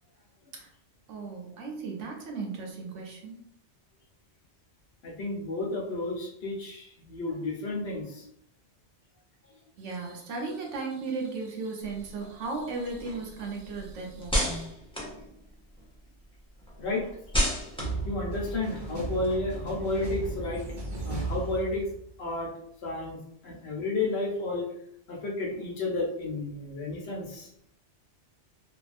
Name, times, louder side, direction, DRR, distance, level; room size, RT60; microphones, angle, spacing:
voice 1, 1.1-3.4 9.8-14.7, right 4 dB, 80° right, 1 dB, 1.0 m, -36 dB
voice 2, 5.0-8.3 16.8-17.0 18.0-20.6 21.0-21.9 22.2-22.5 22.8-23.2 23.4-24.7 25.1-27.5, left 2 dB, 65° left, -1 dB, 0.9 m, -32 dB
sound 1, 11.8-16.0 16.3-19.8, equal, 10° left, 0.4 m, -34 dB
sound 2, 17.8-22.3, right 3 dB, 50° right, 0.6 m, -35 dB
2.7 x 2.3 x 2.4 m, 0.72 s
omnidirectional pair, 1.2 m